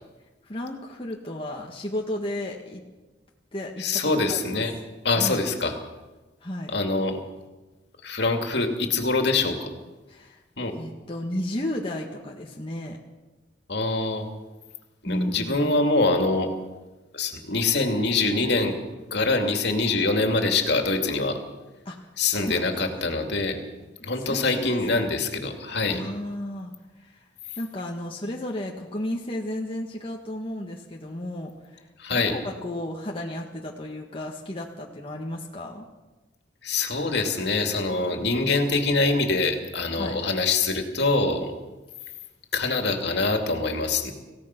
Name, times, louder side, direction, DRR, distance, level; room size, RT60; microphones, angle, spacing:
voice 1, 0.4-2.8 3.5-4.6 5.1-5.4 6.4-6.7 10.1-10.4 10.7-13.0 15.1-15.7 21.9-22.6 24.0-25.1 25.9-27.2 27.6-35.9 40.0-40.2, left 1 dB, 30° left, -1 dB, 1.7 m, -33 dB
voice 2, 3.8-4.7 5.0-5.8 6.7-7.2 8.0-9.7 10.6-10.7 13.7-14.3 15.0-16.5 17.1-18.7 19.1-21.4 22.2-23.6 24.0-26.0 32.0-32.3 36.6-41.5 42.5-44.1, left 3 dB, 65° left, 4 dB, 2.7 m, -24 dB
27.0 x 16.5 x 6.1 m, 1.2 s
head